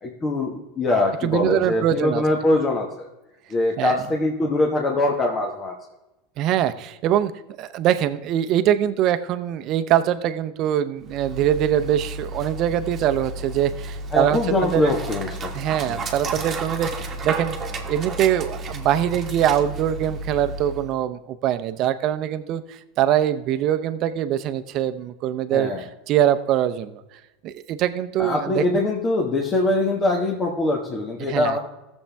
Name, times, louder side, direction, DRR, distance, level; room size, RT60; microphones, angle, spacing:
voice 1, 0.0-3.1 3.5-5.8 14.1-15.5 15.9-16.0 25.5-25.8 28.2-31.6, left 2 dB, 25° left, 0 dB, 1.3 m, -23 dB
voice 2, 1.2-2.2 3.8-4.0 6.4-7.3 7.6-14.9 15.5-17.6 17.9-27.0 27.4-28.6 31.2-31.6, right 11 dB, 50° right, 11 dB, 0.7 m, -23 dB
Dog, 11.0-20.9, right 2 dB, 25° right, 1.4 m, -32 dB
15.5 x 7.3 x 3.5 m, 0.99 s
supercardioid pair, 120°, 0 cm